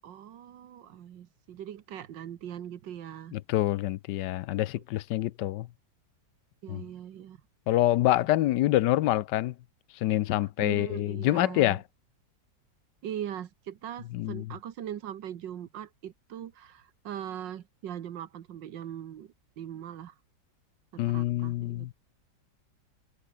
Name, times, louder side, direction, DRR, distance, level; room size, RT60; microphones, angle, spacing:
voice 1, 0.0-3.4 6.6-7.4 10.6-11.8 13.0-20.2 20.9-21.9, right 10 dB, 80° right, 1.8 m, -40 dB
voice 2, 3.3-5.7 6.7-6.8 7.7-9.6 9.9-11.8 14.1-14.5 21.0-21.9, left 15 dB, 75° left, 1.2 m, -26 dB
omnidirectional pair, 1.9 m